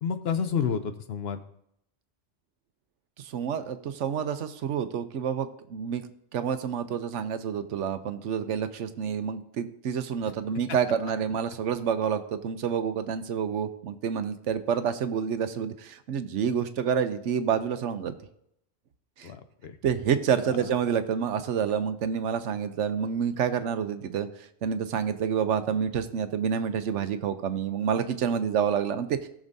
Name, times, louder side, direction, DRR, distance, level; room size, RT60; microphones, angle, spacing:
voice 1, 0.0-1.4 19.2-19.8 20.6-20.7, left 7 dB, 60° left, 9 dB, 0.8 m, -30 dB
voice 2, 3.2-6.0 6.3-18.1 19.2-19.3 19.8-24.3 24.6-29.3, right 7 dB, 75° right, 10 dB, 1.0 m, -28 dB
18.0 x 6.3 x 2.6 m, 0.75 s
omnidirectional pair, 1.3 m